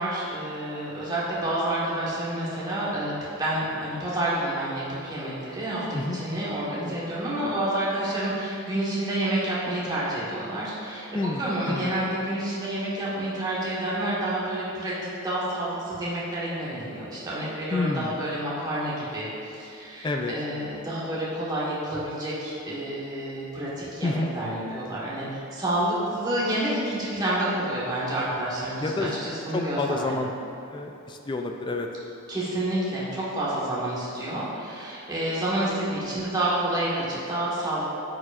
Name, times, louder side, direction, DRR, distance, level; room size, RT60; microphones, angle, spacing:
voice 1, 0.0-15.0 15.2-30.2 32.3-37.9, right 1 dB, 20° right, -8 dB, 1.3 m, -29 dB
voice 2, 11.1-12.0 17.7-18.1 20.0-20.3 24.0-24.3 28.8-29.1 29.5-30.3 30.7-31.9, left 2 dB, 20° left, 3 dB, 0.3 m, -29 dB
9.6 x 4.7 x 2.5 m, 2.7 s
head